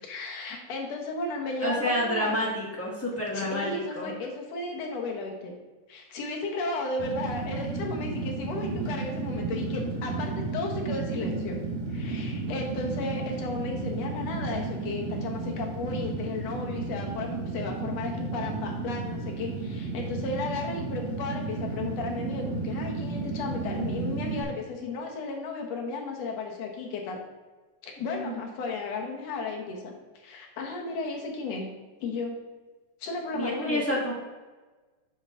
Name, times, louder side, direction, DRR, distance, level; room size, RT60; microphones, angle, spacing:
voice 1, 0.0-2.4 3.3-5.5 5.9-11.6 11.9-27.2 27.8-31.7 32.0-32.4 33.0-33.8, left 3 dB, 65° left, 1 dB, 2.2 m, -34 dB
voice 2, 1.6-4.1 28.0-28.4 33.3-34.1, left 1 dB, 20° left, -6 dB, 0.3 m, -29 dB
Fire, 7.0-24.4, right 3 dB, 70° right, 2.3 m, -33 dB
8.0 x 5.6 x 3.6 m, 1.3 s
omnidirectional pair, 3.3 m